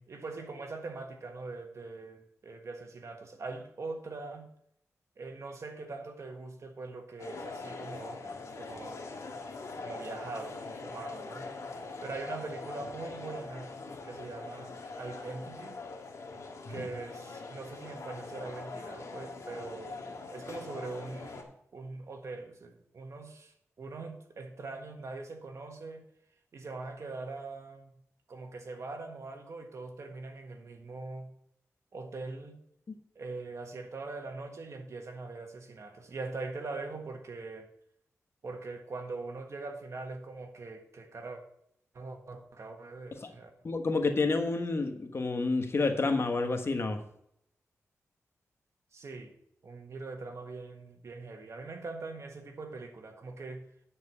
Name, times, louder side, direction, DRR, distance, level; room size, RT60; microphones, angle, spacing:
voice 1, 0.0-4.5 5.2-9.1 9.8-11.5 12.0-13.7 14.0-15.8 16.7-20.0 20.3-21.5 21.7-26.0 26.5-28.0 28.3-31.3 31.9-32.6 33.1-37.7 38.4-41.4 41.9-43.5 48.9-49.4 49.6-53.7, right 3 dB, 60° right, 5 dB, 1.5 m, -42 dB
sound 1, 7.2-21.4, left 3 dB, 70° left, 1.7 m, -43 dB
voice 2, 43.6-47.0, left 3 dB, 50° left, 5 dB, 1.3 m, -29 dB
9.9 x 4.6 x 6.8 m, 0.73 s
cardioid pair, 70°, 6 cm